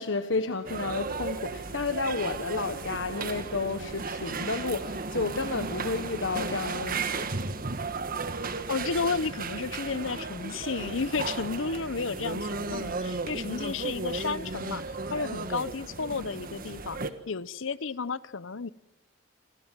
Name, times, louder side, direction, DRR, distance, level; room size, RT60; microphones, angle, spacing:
voice 1, 0.0-7.3, left 3 dB, 70° left, 9 dB, 1.4 m, -31 dB
sound 1, 0.7-17.1, right 3 dB, 50° right, 1.7 m, -35 dB
voice 2, 8.7-14.8 15.1-17.0 17.3-18.7, left 4 dB, 85° left, 18 dB, 0.9 m, -32 dB
28.0 x 26.0 x 7.5 m, 0.89 s
head